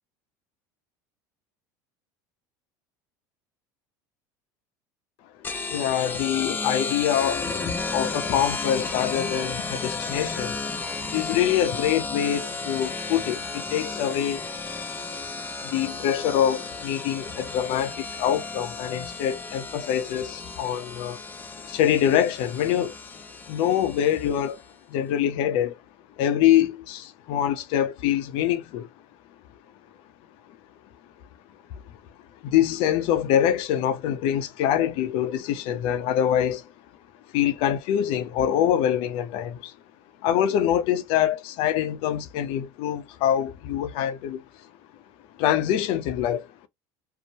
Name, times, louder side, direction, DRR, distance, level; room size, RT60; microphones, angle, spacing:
sound 1, 5.4-24.6, left 3 dB, 20° left, 0.5 m, -33 dB
voice 1, 5.7-10.6 11.1-14.5 15.6-21.2 21.6-23.0 23.5-24.6 24.9-25.8 26.2-28.9 32.4-36.6 37.3-39.7 40.2-44.4 45.4-46.5, left 10 dB, 65° left, 0.6 m, -24 dB
2.8 x 2.1 x 2.8 m
supercardioid pair, 95°, 10 cm